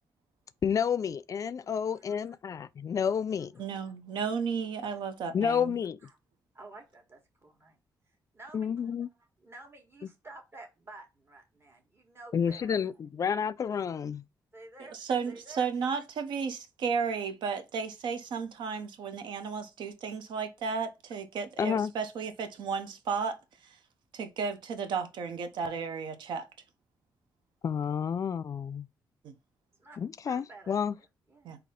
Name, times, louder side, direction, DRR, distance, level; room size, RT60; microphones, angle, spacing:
voice 1, 0.6-3.5 5.3-6.0 8.5-9.1 12.3-14.2 21.6-21.9 27.6-28.9 30.0-30.9, left 7 dB, 45° left, 0.3 m, -30 dB
voice 2, 1.9-2.4 4.9-5.0 6.0-6.2 6.5-7.8 8.1-8.9 9.4-13.0 14.5-15.0 15.2-15.7 29.7-30.0 30.2-31.5, right 2 dB, 30° right, 1.4 m, -51 dB
voice 3, 3.6-5.8 14.9-23.4 23.6-23.8 24.1-26.5 29.2-29.3 31.4-31.6, right 5 dB, 85° right, 0.7 m, -33 dB
4.1 x 2.7 x 3.6 m
cardioid pair, 90°, 8 cm